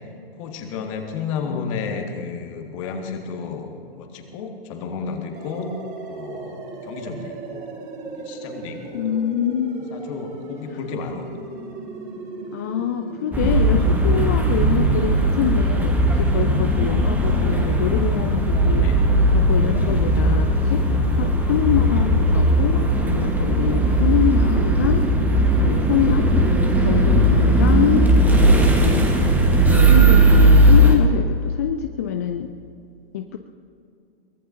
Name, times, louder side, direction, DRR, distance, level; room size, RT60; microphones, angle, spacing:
voice 1, 0.4-3.7 4.0-5.7 6.1-7.6 8.0-9.0 9.9-11.3 11.7-11.8 18.8-19.0 20.8-21.1 23.4-23.6 26.9-27.2 31.0-31.1, left 5 dB, 35° left, 3 dB, 2.1 m, -33 dB
voice 2, 1.5-2.2 8.9-9.8 12.5-25.0 25.6-26.3 26.8-29.0 29.7-32.5 33.1-33.4, left 9 dB, 20° left, 7 dB, 0.3 m, -25 dB
sound 1, 5.4-20.3, right 2 dB, 25° right, 2.7 m, -36 dB
sound 2, 13.3-31.0, right 1 dB, 5° right, 1.4 m, -17 dB
23.0 x 19.5 x 2.8 m, 2.4 s
figure-of-eight pair, 115°, 29 cm